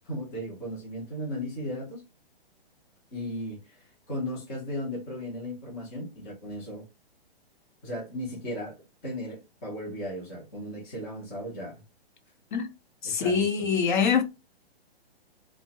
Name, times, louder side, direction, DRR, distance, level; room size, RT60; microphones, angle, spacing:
voice 1, 0.0-2.0 3.1-6.8 7.8-8.8 9.0-11.8 13.0-13.5, equal, 10° left, 0.4 m, -36 dB
voice 2, 13.0-14.2, left 6 dB, 50° left, 0.7 m, -24 dB
2.8 x 2.0 x 2.7 m
hypercardioid pair, 150°, 31 cm